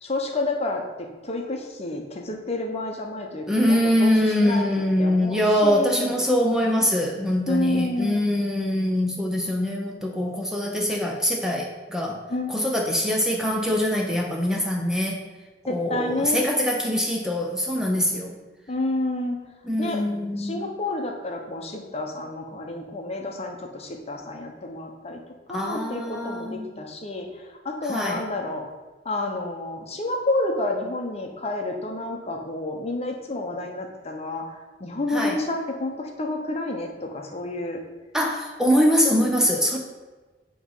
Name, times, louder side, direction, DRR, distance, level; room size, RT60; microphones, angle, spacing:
voice 1, 0.0-4.7 5.0-6.2 7.5-8.2 12.3-12.6 15.6-16.4 18.7-19.4 19.8-20.0 20.4-25.2 25.5-28.6 29.0-37.8, left 2 dB, 35° left, 2 dB, 0.8 m, -30 dB
voice 2, 3.5-12.2 12.5-15.2 15.7-18.4 19.6-20.7 25.5-26.7 27.8-28.2 35.1-35.4 38.1-39.8, equal, 5° right, 0 dB, 0.6 m, -23 dB
8.5 x 3.1 x 5.4 m, 1.3 s
head